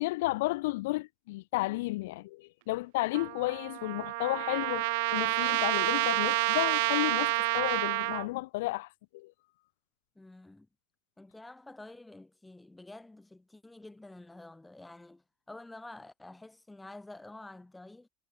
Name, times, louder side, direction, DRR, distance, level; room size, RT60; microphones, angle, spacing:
voice 1, 0.0-4.8 5.1-8.9 9.1-9.3, left 20 dB, 85° left, 1.5 m, -32 dB
Trumpet, 3.1-8.3, right 24 dB, 70° right, 0.3 m, -29 dB
voice 2, 10.2-10.7 11.2-18.1, left 2 dB, 5° left, 2.5 m, -49 dB
cardioid pair, 170°, 0 cm